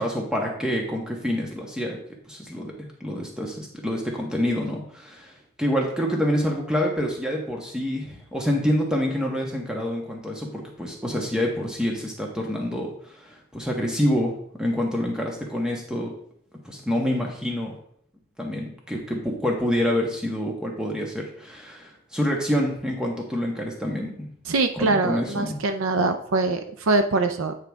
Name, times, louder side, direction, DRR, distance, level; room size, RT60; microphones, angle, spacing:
voice 1, 0.0-2.0 2.3-14.3 14.6-16.1 16.6-17.7 18.4-24.3 24.7-25.6, equal, 5° right, 0 dB, 1.3 m, -27 dB
voice 2, 24.5-27.5, right 3 dB, 65° right, 7 dB, 0.5 m, -23 dB
8.9 x 4.9 x 3.5 m, 0.63 s
head